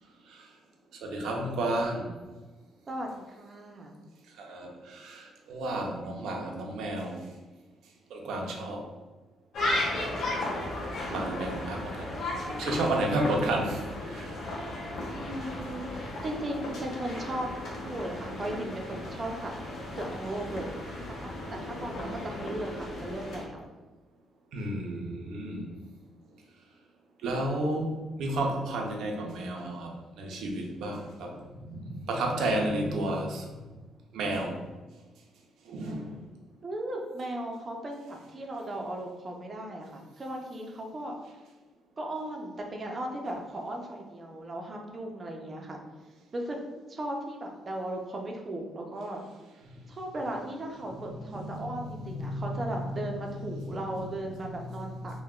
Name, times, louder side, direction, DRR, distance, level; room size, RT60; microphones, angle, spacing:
voice 1, 1.0-2.2 4.4-7.3 8.1-8.9 11.1-12.1 12.6-14.4 24.5-25.7 27.2-33.5 34.1-34.7 35.7-36.2 51.0-54.1 54.5-54.9 55.1-55.2, right 1 dB, 80° right, 1 dB, 0.5 m, -32 dB
voice 2, 2.9-4.0 15.1-15.9 16.2-19.5 20.0-23.7 36.6-41.2 42.0-45.8 46.3-46.6 46.9-49.2 49.9-55.2, right 1 dB, 35° right, 1 dB, 0.5 m, -37 dB
sound 1, 9.5-23.4, left 1 dB, 70° left, 0.8 m, -35 dB
3.5 x 2.2 x 2.3 m, 1.2 s
cardioid pair, 90°, 0 cm